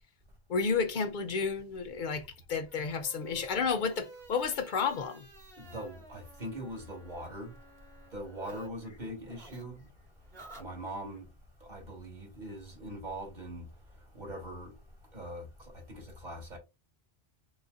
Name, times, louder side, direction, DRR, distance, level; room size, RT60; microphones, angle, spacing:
voice 1, 0.5-2.2 2.5-5.2, left 5 dB, 55° left, 0.7 m, -31 dB
sound 1, 2.1-8.7 9.0-11.2, right 1 dB, 65° right, 2.3 m, -53 dB
voice 2, 5.6-7.5 8.1-9.9 10.6-11.3 11.6-13.6 14.1-14.7 15.1-16.6, right 1 dB, 45° right, 1.7 m, -42 dB
4.1 x 3.9 x 2.4 m
omnidirectional pair, 1.0 m